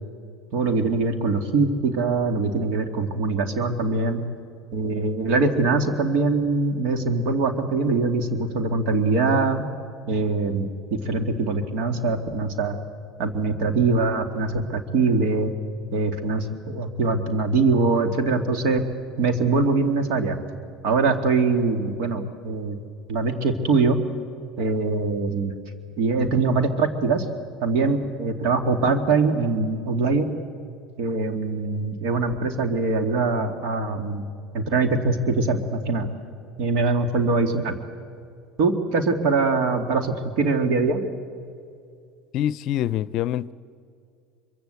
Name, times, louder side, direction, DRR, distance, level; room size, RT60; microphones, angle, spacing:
voice 1, 0.5-4.2 4.7-9.6 10.1-10.7 11.0-12.8 13.2-15.5 15.9-18.8 19.2-20.4 20.8-22.8 23.1-24.0 24.6-25.5 26.0-27.2 27.6-30.3 31.0-34.3 34.5-36.1 36.6-37.7 38.6-41.0, right 3 dB, 65° right, 7 dB, 2.5 m, -23 dB
voice 2, 42.3-43.5, left 11 dB, 60° left, 19 dB, 0.6 m, -25 dB
25.0 x 23.5 x 8.3 m, 2.4 s
hypercardioid pair, 80°, 0 cm